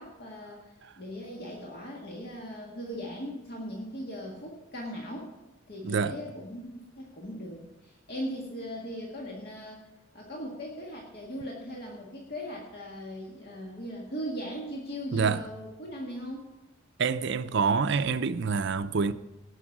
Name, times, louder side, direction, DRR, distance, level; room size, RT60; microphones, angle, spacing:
voice 1, 0.0-5.3 5.7-9.8 10.1-16.5, equal, 55° left, 1.8 m, -39 dB
voice 2, 15.1-15.4 17.0-19.1, right 5 dB, 60° right, 0.5 m, -26 dB
17.0 x 6.2 x 6.0 m
head